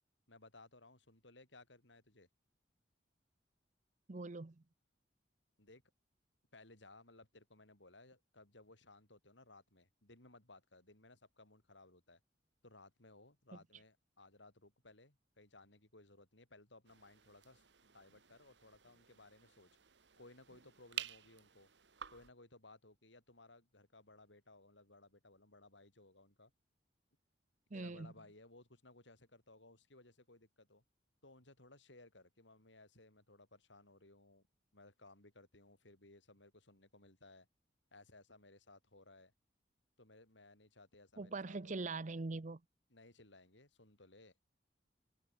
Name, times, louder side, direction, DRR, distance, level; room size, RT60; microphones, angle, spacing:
voice 1, 0.3-2.3 5.6-5.8 6.5-12.2 12.6-19.7 20.2-21.7 22.1-26.5 27.7-30.8 31.2-34.5 34.7-37.5 37.9-39.3 40.0-41.8 42.9-44.3, left 2 dB, 80° left, 6.5 m, -61 dB
voice 2, 4.1-4.6 27.7-28.1 41.2-42.6, right 3 dB, 45° right, 0.7 m, -42 dB
sound 1, 16.8-22.3, right 10 dB, 70° right, 1.6 m, -51 dB
head